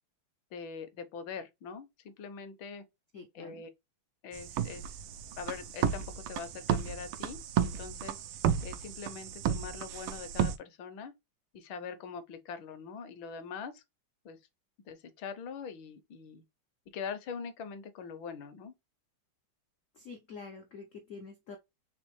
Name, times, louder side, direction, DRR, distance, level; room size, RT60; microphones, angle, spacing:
voice 1, 0.5-2.8 3.3-3.7 4.2-5.0 5.4-8.2 8.6-11.1 11.5-13.8 14.2-14.4 14.8-16.4 16.9-18.7, left 6 dB, 70° left, 1.3 m, -43 dB
voice 2, 3.1-3.6 19.9-21.6, left 4 dB, 90° left, 0.7 m, -47 dB
sound 1, 4.3-10.6, right 8 dB, 90° right, 1.5 m, -33 dB
4.2 x 3.3 x 3.0 m
omnidirectional pair, 2.4 m